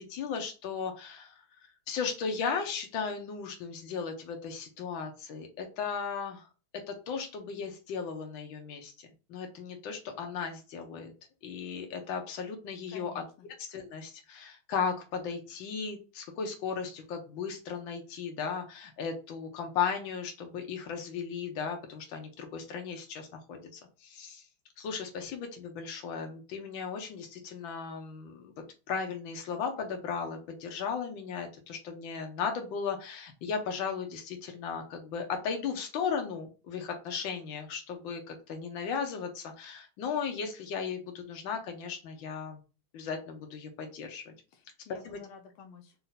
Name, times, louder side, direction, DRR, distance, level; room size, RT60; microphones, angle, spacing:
voice 1, 0.0-1.4 1.9-6.5 6.9-11.1 11.4-13.2 13.6-24.4 24.8-28.5 28.9-42.6 42.9-44.3 45.0-45.2, left 6 dB, 70° left, 4 dB, 1.7 m, -36 dB
voice 2, 12.9-13.5 44.5-45.9, left 5 dB, 85° left, 4 dB, 1.6 m, -51 dB
4.4 x 2.8 x 3.9 m, 0.33 s
omnidirectional pair, 2.3 m